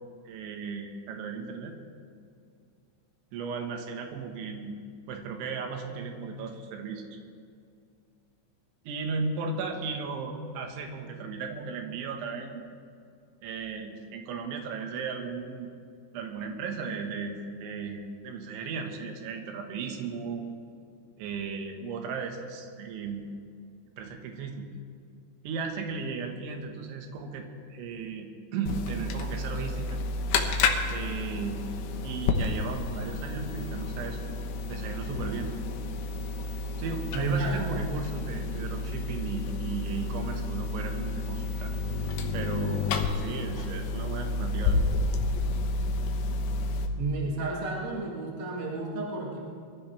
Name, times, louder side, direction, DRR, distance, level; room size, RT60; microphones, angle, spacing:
voice 1, 0.3-1.7 3.3-4.8 5.1-7.0 8.9-12.6 13.4-15.7 16.1-20.4 21.2-23.3 24.0-24.7 25.4-30.0 30.9-31.7 32.0-34.2 34.7-35.5 36.8-41.7 42.3-42.9 43.2-44.8, right 5 dB, 70° right, 3 dB, 3.6 m, -35 dB
sound 1, 28.7-46.9, left 3 dB, 80° left, 2.3 m, -30 dB
voice 2, 37.1-37.8 47.0-49.4, right 3 dB, 40° right, -4 dB, 2.6 m, -31 dB
23.5 x 15.5 x 3.4 m, 2.3 s
omnidirectional pair, 5.9 m